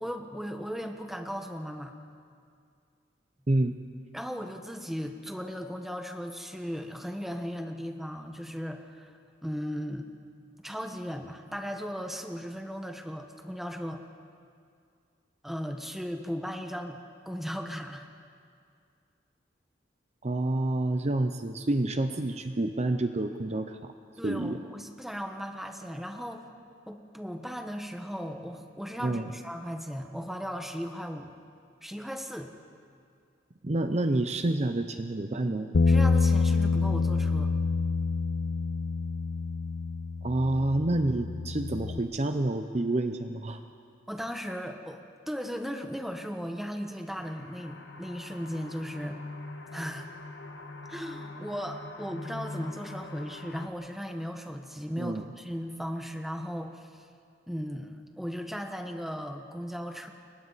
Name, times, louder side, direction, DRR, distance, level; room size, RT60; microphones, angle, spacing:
voice 1, 0.0-1.9 4.1-9.1 9.4-10.1 10.6-14.0 15.4-18.1 24.2-26.4 26.9-31.3 31.8-32.5 35.9-37.5 44.1-45.0 45.3-49.2 49.7-50.1 50.9-57.0 57.5-60.1, equal, ahead, 4 dB, 1.3 m, -37 dB
voice 2, 20.2-23.9 24.2-24.6 29.0-29.3 33.6-35.7 40.2-43.6 55.0-55.2, right 2 dB, 35° right, 7 dB, 0.7 m, -28 dB
Bass guitar, 35.7-42.0, left 4 dB, 55° left, 0.5 m, -27 dB
sound 1, 47.2-53.7, left 2 dB, 70° left, 1.7 m, -43 dB
30.0 x 23.0 x 4.1 m, 2.3 s
head